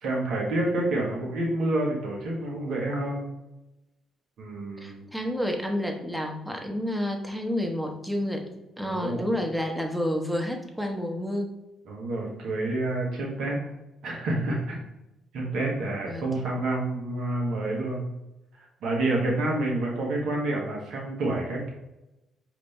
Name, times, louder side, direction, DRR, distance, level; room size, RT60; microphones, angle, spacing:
voice 1, 0.0-3.3 4.4-5.1 8.8-9.2 11.8-13.6 14.0-14.8 15.3-18.0 18.6-21.7, right 2 dB, 65° right, -2 dB, 1.4 m, -28 dB
voice 2, 4.8-8.5 8.8-11.5 16.0-16.5, equal, 5° right, 2 dB, 1.0 m, -30 dB
5.0 x 3.0 x 3.3 m, 0.95 s
hypercardioid pair, 50°, 0 cm